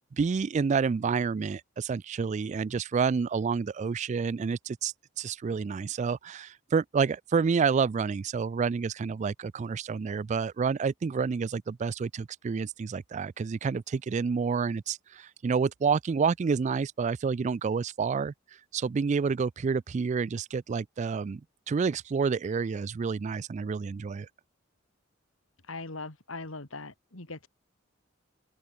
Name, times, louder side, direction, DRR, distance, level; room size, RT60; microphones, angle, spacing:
voice 1, 0.1-18.3 18.7-21.4 21.7-24.3, right 5 dB, 35° right, 0.3 m, -29 dB
voice 2, 25.7-27.5, left 3 dB, 80° left, 3.0 m, -40 dB
open air
head